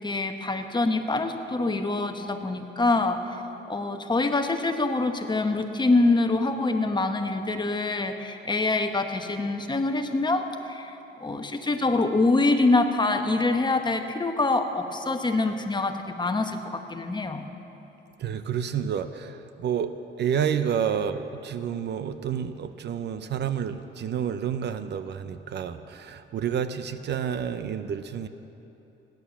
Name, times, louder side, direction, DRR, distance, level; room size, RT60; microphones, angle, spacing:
voice 1, 0.0-3.2 3.7-17.5, left 2 dB, 20° left, 6 dB, 1.2 m, -25 dB
voice 2, 18.2-28.3, right 8 dB, 60° right, 11 dB, 0.7 m, -29 dB
16.5 x 10.5 x 7.1 m, 3.0 s
cardioid pair, 90°, 20 cm